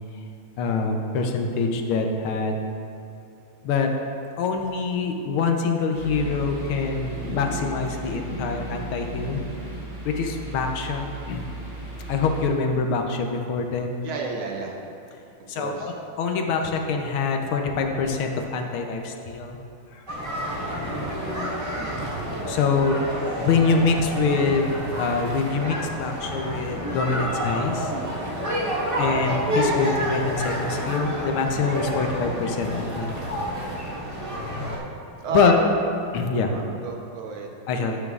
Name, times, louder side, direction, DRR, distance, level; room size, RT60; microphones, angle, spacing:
voice 1, 0.6-2.6 3.6-3.9 4.4-9.4 10.0-11.4 12.1-14.0 15.5-19.6 19.9-20.7 22.5-23.0 23.4-24.7 25.0-27.9 29.0-33.1 35.3-35.6 36.1-36.5 37.7-38.0, left 4 dB, 75° left, 3 dB, 1.5 m, -25 dB
sound 1, 5.9-12.5, right 1 dB, 50° right, 2.8 m, -35 dB
voice 2, 14.0-14.8 15.6-15.9 21.8-22.1 35.2-35.8 36.4-37.5, right 6 dB, 70° right, 0 dB, 1.7 m, -31 dB
sound 2, 20.1-34.8, equal, 20° right, 1.0 m, -29 dB
12.5 x 8.2 x 2.4 m, 2.8 s
omnidirectional pair, 2.4 m